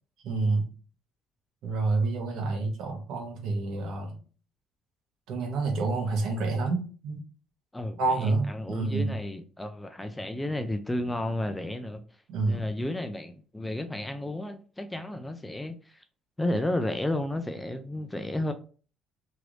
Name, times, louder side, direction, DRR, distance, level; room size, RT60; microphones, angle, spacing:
voice 1, 0.2-0.7 1.6-4.2 5.3-7.2 8.0-9.1 12.3-12.7, right 3 dB, 65° right, 1.0 m, -28 dB
voice 2, 7.7-12.0 12.5-16.0 16.4-18.5, left 1 dB, 5° left, 0.3 m, -32 dB
3.1 x 2.5 x 3.0 m
cardioid pair, 150°, 0 cm